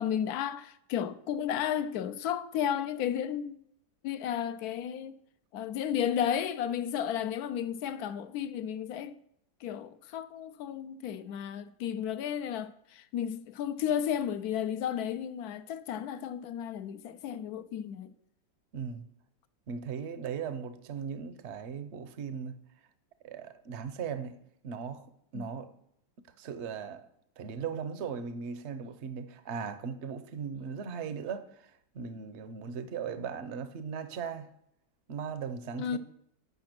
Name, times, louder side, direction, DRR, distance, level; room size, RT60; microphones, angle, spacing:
voice 1, 0.0-3.6 4.0-5.2 5.5-9.2 9.6-18.1 25.3-25.5 35.8-36.0, left 9 dB, 70° left, 0.9 m, -33 dB
voice 2, 18.7-19.1 19.7-22.5 23.2-24.3 24.6-25.1 25.3-25.7 26.4-27.1 27.4-34.5 35.1-36.0, right 6 dB, 55° right, 0.7 m, -38 dB
9.6 x 5.7 x 5.9 m
omnidirectional pair, 2.0 m